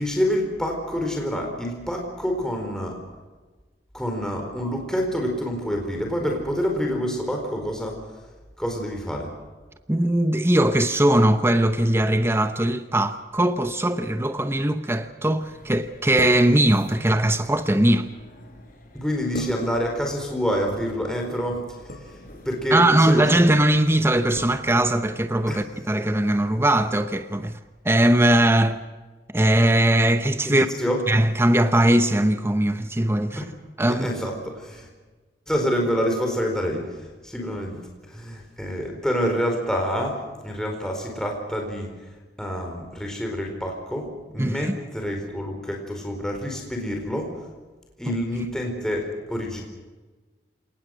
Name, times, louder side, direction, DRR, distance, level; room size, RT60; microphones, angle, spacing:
voice 1, 0.0-3.0 3.9-8.0 8.6-9.3 18.9-21.6 22.4-23.4 25.5-25.6 30.4-31.0 33.4-33.5 33.9-34.9 35.5-37.8 38.1-41.9 42.4-47.4 48.0-49.6, equal, 5° left, 4.4 m, -27 dB
voice 2, 9.9-18.1 22.7-27.6 27.8-28.8 29.3-30.7 31.1-33.4 33.8-34.1 44.4-44.7 48.1-48.2, right 1 dB, 15° right, 0.9 m, -20 dB
sound 1, 15.4-25.9, left 1 dB, 55° left, 5.0 m, -42 dB
28.5 x 19.0 x 6.5 m
head